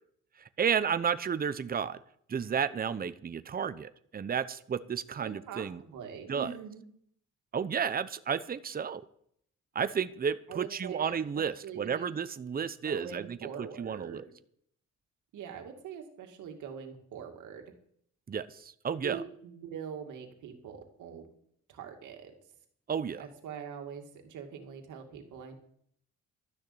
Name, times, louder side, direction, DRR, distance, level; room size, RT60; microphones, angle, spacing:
voice 1, 0.6-2.0 2.3-5.8 6.3-6.5 7.5-9.0 9.7-14.2 18.3-19.2 22.9-23.3, right 7 dB, 30° right, 13 dB, 0.8 m, -32 dB
voice 2, 5.2-6.8 10.5-11.1 11.6-12.1 12.8-14.2 15.3-17.6 19.0-21.3 21.7-22.3 23.2-25.5, right 7 dB, 80° right, 4 dB, 2.4 m, -43 dB
12.5 x 6.5 x 8.7 m, 0.67 s
cardioid pair, 90°, 30 cm